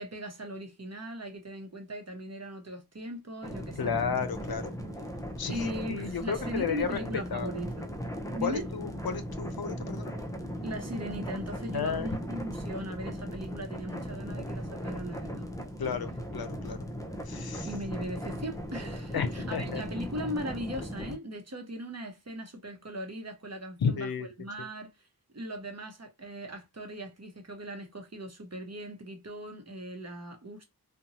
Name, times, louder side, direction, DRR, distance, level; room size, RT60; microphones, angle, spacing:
voice 1, 0.0-3.9 5.5-7.9 8.3-8.7 10.6-15.5 17.6-25.0 25.3-30.6, equal, 45° right, 0.9 m, -39 dB
sound 1, 3.4-21.2, equal, 10° left, 0.6 m, -38 dB
voice 2, 3.8-4.7 5.4-7.5 8.4-10.1 11.7-12.1 15.8-16.8 17.3-17.7 19.1-19.8 23.8-24.3, left 6 dB, 75° left, 0.5 m, -32 dB
2.7 x 2.2 x 2.8 m
wide cardioid pair, 45°, 37 cm